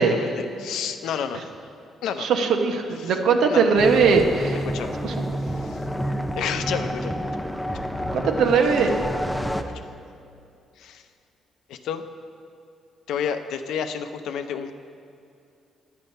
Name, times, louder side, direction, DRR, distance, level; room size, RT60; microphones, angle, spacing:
voice 1, 0.1-1.5 2.0-2.3 3.0-3.2 3.5-3.7 4.7-4.9 5.5-5.8 6.4-7.1 9.6-9.7 10.8-11.0 11.7-12.0 13.1-14.7, left 7 dB, 80° left, 8 dB, 0.6 m, -30 dB
voice 2, 2.2-4.6 5.0-5.3 8.1-8.9, right 5 dB, 75° right, 4 dB, 1.0 m, -20 dB
sound 1, 3.8-9.6, equal, ahead, 0.6 m, -29 dB
10.0 x 9.0 x 5.4 m, 2.5 s
cardioid pair, 90°, 0 cm